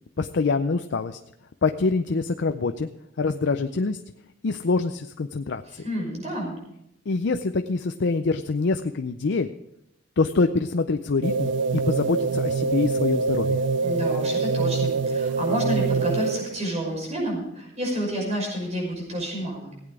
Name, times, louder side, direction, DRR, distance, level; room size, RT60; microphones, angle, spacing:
voice 1, 0.2-1.2 1.6-2.9 3.2-4.0 4.4-5.6 7.1-9.5 10.2-11.5 11.9-13.6, left 3 dB, 65° left, 7 dB, 0.5 m, -25 dB
voice 2, 5.7-6.6 13.8-19.7, right 1 dB, 35° right, -1 dB, 5.8 m, -29 dB
sound 1, 11.2-16.7, right 4 dB, 65° right, 0.4 m, -25 dB
16.5 x 8.9 x 4.8 m, 0.81 s
head